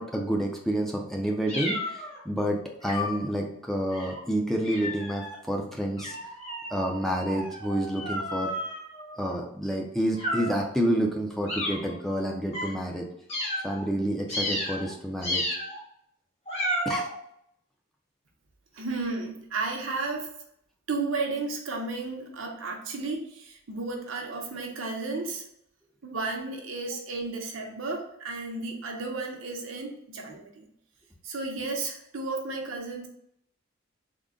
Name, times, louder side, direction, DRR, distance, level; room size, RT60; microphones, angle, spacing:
voice 1, 0.0-6.2 6.7-8.5 9.2-13.1 13.6-15.4 16.9-17.1, equal, ahead, 0 dB, 0.4 m, -29 dB
sound 1, 1.5-2.2 2.8-3.3 3.9-4.2 4.6-5.4 6.0-9.4 10.1-10.7 11.5-11.9 12.5-12.7 13.3-13.8 14.3-14.9 15.2-15.8 16.5-17.1, equal, 30° left, 1.1 m, -33 dB
voice 2, 18.7-20.3 20.9-25.4 26.0-30.7 31.2-33.1, right 3 dB, 75° right, 1 dB, 0.8 m, -33 dB
3.7 x 2.1 x 3.6 m, 0.71 s
head